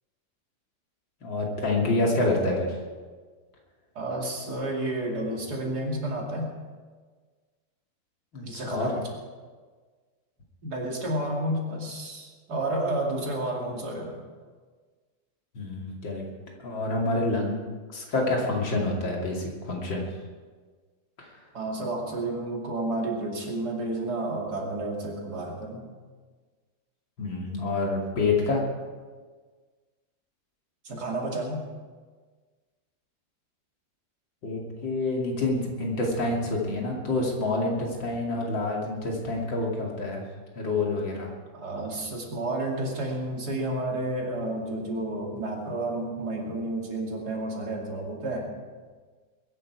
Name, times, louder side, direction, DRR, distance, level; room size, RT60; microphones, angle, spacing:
voice 1, 1.2-2.7 8.3-8.9 15.6-16.2 16.6-17.5 17.9-20.1 21.2-21.3 27.2-28.6 34.4-40.2 40.6-41.3, left 2 dB, 90° left, -1 dB, 3.3 m, -27 dB
voice 2, 3.9-6.5 8.4-9.1 10.6-14.2 21.5-25.9 30.8-31.7 41.5-48.5, right 1 dB, 55° right, -1 dB, 3.1 m, -31 dB
21.5 x 11.0 x 4.8 m, 1.5 s
omnidirectional pair, 2.0 m